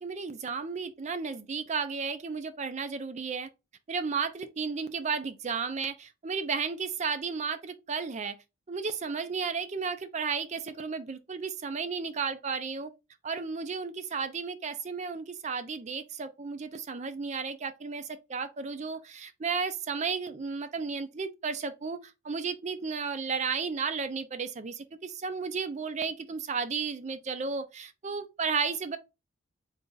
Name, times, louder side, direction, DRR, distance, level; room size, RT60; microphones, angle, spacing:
voice 1, 0.0-3.5 3.9-8.4 8.7-12.9 13.2-29.0, right 5 dB, 35° right, 0.4 m, -33 dB
3.9 x 2.4 x 3.8 m
head